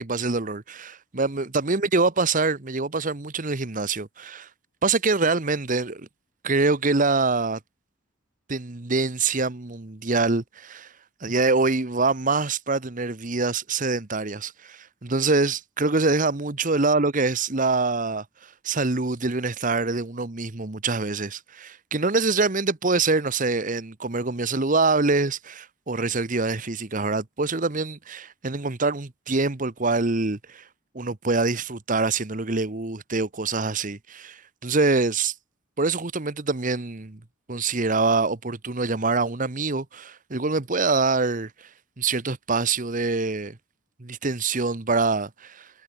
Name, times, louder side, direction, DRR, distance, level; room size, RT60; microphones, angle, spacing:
voice 1, 0.0-4.5 4.8-6.1 6.4-7.6 8.5-10.9 11.2-30.6 30.9-35.3 35.8-37.2 37.5-41.7 42.0-43.6 44.0-45.7, right 3 dB, 40° right, 1.1 m, -25 dB
head